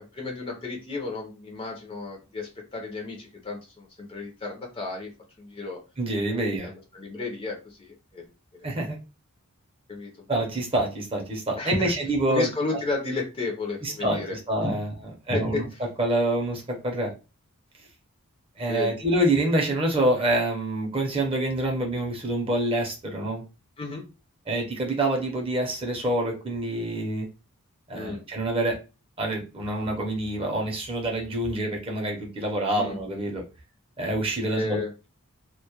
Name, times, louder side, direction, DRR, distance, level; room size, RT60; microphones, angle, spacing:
voice 1, 0.0-5.1 5.4-5.8 6.6-8.3 8.5-8.7 9.9-10.3 11.6-11.9 12.2-14.4 14.6-14.7 15.3-15.6 18.7-18.9 23.8-24.0 27.9-28.2 32.8-33.0 34.5-34.9, left 3 dB, 25° left, 0 dB, 0.5 m, -33 dB
voice 2, 6.0-6.7 8.6-9.0 10.3-12.8 13.8-14.9 15.3-15.7 16.0-17.1 18.6-23.4 24.5-27.3 27.9-28.8 29.2-33.4 34.0-34.8, right 1 dB, 25° right, 1 dB, 0.6 m, -26 dB
2.1 x 2.0 x 2.8 m, 0.30 s
head